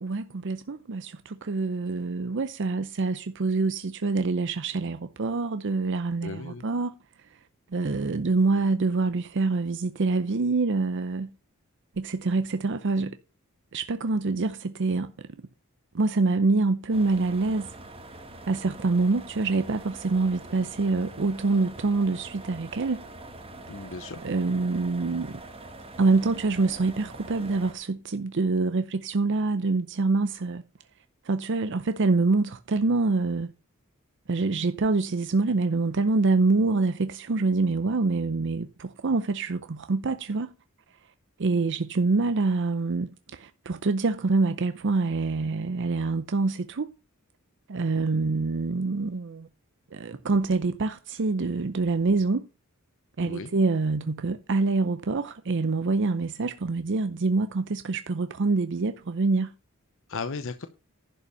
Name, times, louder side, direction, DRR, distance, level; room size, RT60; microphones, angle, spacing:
voice 1, 0.0-6.9 7.7-11.3 12.0-13.2 13.7-15.1 15.9-17.7 18.5-23.0 24.2-25.3 26.0-30.6 31.2-33.5 34.3-40.5 41.4-46.9 47.7-49.5 49.9-52.5 53.2-59.5, right 3 dB, 60° right, 0.6 m, -26 dB
voice 2, 6.2-6.6 23.7-24.2 53.2-53.5 60.1-60.7, left 4 dB, 65° left, 0.8 m, -35 dB
sound 1, 16.9-27.7, right 2 dB, 25° right, 1.6 m, -44 dB
11.0 x 5.5 x 6.7 m
head